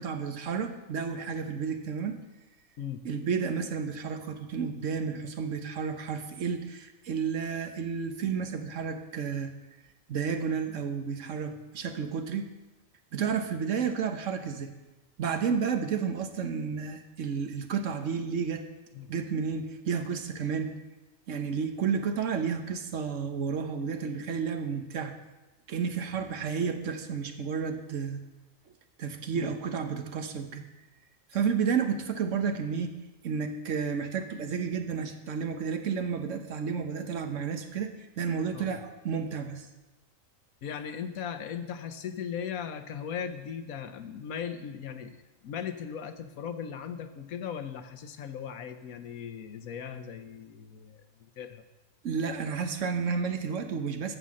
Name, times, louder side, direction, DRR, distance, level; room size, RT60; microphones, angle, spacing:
voice 1, 0.0-2.2 3.0-9.5 10.1-12.5 13.1-14.7 15.2-18.6 19.1-20.7 21.3-25.1 25.7-28.2 29.0-30.6 31.3-32.9 33.2-39.7 52.0-54.2, right 6 dB, 65° right, 7 dB, 1.3 m, -31 dB
voice 2, 40.6-45.2 45.4-51.6, left 8 dB, 90° left, 9 dB, 1.3 m, -38 dB
13.5 x 5.5 x 7.6 m, 1.1 s
omnidirectional pair, 1.4 m